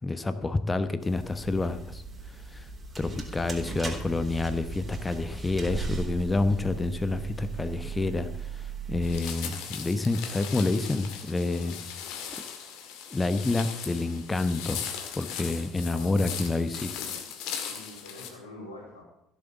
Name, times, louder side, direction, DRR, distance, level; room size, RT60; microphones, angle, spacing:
voice 1, 0.0-2.0 2.3-2.7 3.0-11.7 13.1-14.9 15.2-17.0, left 3 dB, 15° left, 11 dB, 1.1 m, -28 dB
sound 1, 1.0-9.2, right 5 dB, 25° right, 4.4 m, -37 dB
sound 2, 9.0-18.3, left 8 dB, 55° left, 2.1 m, -38 dB
voice 2, 11.4-11.7 15.8-16.3 17.7-19.0, left 2 dB, 75° left, -6 dB, 3.3 m, -46 dB
15.5 x 7.5 x 7.1 m, 0.83 s
figure-of-eight pair, 60°, 0 cm